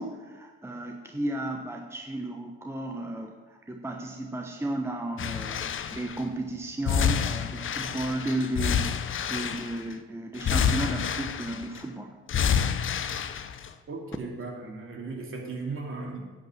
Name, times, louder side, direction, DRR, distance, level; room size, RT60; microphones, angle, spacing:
voice 1, 0.0-12.1, right 1 dB, 10° right, 2 dB, 1.0 m, -34 dB
sound 1, 5.2-6.2 6.9-9.9 10.4-11.8 12.3-13.7 14.1-14.2, left 7 dB, 45° left, 0.8 m, -28 dB
voice 2, 13.9-16.2, right 3 dB, 45° right, 0 dB, 2.8 m, -36 dB
10.5 x 5.6 x 7.4 m, 1.3 s
hypercardioid pair, 60°, 30 cm